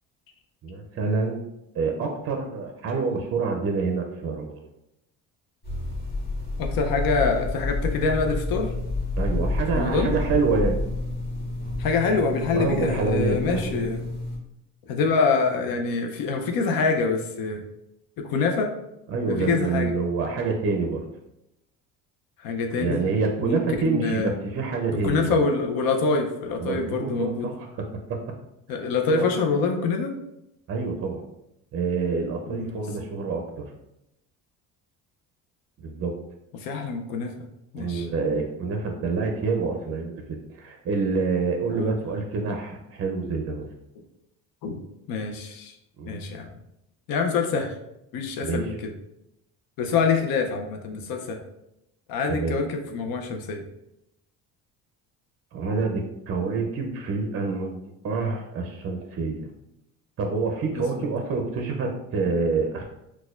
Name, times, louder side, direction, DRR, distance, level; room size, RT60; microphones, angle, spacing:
voice 1, 0.6-1.5 1.7-4.6 9.2-10.8 12.5-13.8 19.1-21.1 22.8-25.4 26.6-28.2 29.1-29.2 30.7-31.2 31.7-33.6 35.8-36.1 37.7-43.7 46.0-46.2 48.4-48.8 52.3-52.6 55.5-59.5 60.2-62.8, right 4 dB, 40° right, 3 dB, 0.5 m, -27 dB
sound 1, 5.6-14.4, left 2 dB, 25° left, 1.1 m, -29 dB
voice 2, 6.6-8.7 9.7-10.1 11.8-14.0 14.9-17.6 18.2-18.7 19.3-19.9 22.4-23.0 23.4-24.3 25.0-27.6 28.7-30.2 32.5-32.8 36.5-37.3 37.7-38.1 41.7-41.9 44.6-44.8 45.1-45.7 46.1-46.5 47.1-47.7 48.1-48.9 49.8-51.4 52.1-53.7 60.7-61.1, left 4 dB, 65° left, 3 dB, 0.6 m, -25 dB
4.1 x 2.3 x 2.4 m, 0.85 s
cardioid pair, 95°, 37 cm